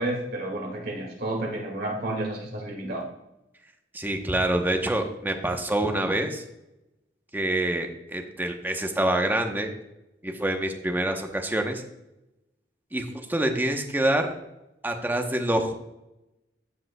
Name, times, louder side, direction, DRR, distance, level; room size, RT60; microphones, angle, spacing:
voice 1, 0.0-3.0, right 1 dB, 60° right, 0 dB, 2.0 m, -31 dB
voice 2, 3.9-6.4 7.3-9.7 10.2-11.8 12.9-14.3 14.8-15.7, right 1 dB, 10° right, 4 dB, 0.8 m, -26 dB
14.0 x 5.1 x 2.2 m, 0.91 s
head